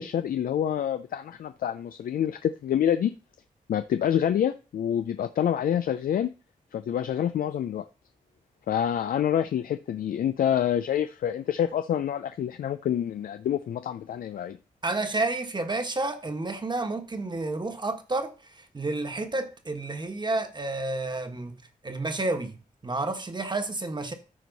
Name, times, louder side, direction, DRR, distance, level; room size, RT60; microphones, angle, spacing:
voice 1, 0.0-3.1 3.7-6.3 6.7-7.9 8.7-14.6, left 9 dB, 90° left, 0.4 m, -27 dB
voice 2, 14.8-24.1, right 2 dB, 30° right, 1.4 m, -30 dB
14.0 x 4.7 x 4.0 m
cardioid pair, 70°, 14 cm